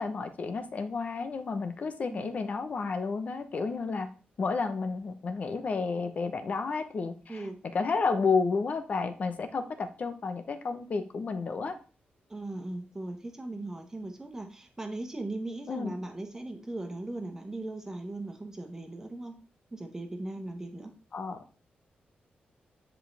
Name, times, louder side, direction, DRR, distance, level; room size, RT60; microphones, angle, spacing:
voice 1, 0.0-4.1 4.4-11.8 15.7-16.0 21.1-21.4, left 4 dB, 45° left, 9 dB, 0.9 m, -31 dB
voice 2, 12.3-19.4 19.7-20.9, right 2 dB, 15° right, 4 dB, 1.4 m, -38 dB
9.8 x 4.9 x 3.4 m, 0.36 s
wide cardioid pair, 155°, 3 cm